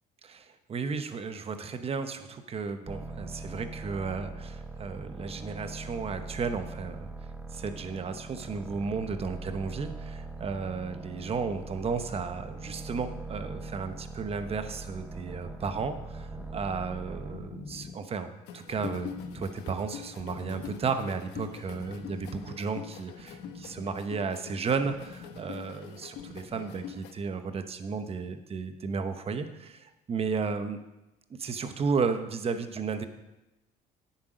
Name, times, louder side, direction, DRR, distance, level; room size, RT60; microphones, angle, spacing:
voice 1, 0.2-7.1 7.5-19.1 19.3-30.8 31.3-33.1, right 5 dB, 35° right, 9 dB, 1.0 m, -33 dB
sound 1, 2.9-17.6, right 3 dB, 10° right, 0.9 m, -41 dB
sound 2, 16.4-27.1, left 4 dB, 40° left, 1.0 m, -48 dB
sound 3, 18.5-27.1, left 8 dB, 90° left, 1.0 m, -44 dB
10.5 x 8.3 x 5.0 m, 0.99 s
cardioid pair, 110°, 17 cm